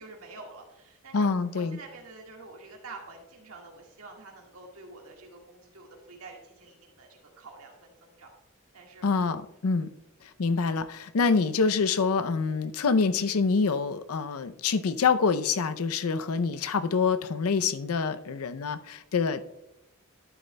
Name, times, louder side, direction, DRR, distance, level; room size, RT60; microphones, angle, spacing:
voice 1, 0.0-1.3 1.5-8.3 8.7-9.1 18.2-18.4, right 3 dB, 75° right, 0 dB, 1.7 m, -47 dB
voice 2, 1.1-1.8 9.0-9.9 10.2-19.4, left 4 dB, 85° left, 12 dB, 0.5 m, -26 dB
11.5 x 9.1 x 2.2 m, 0.91 s
head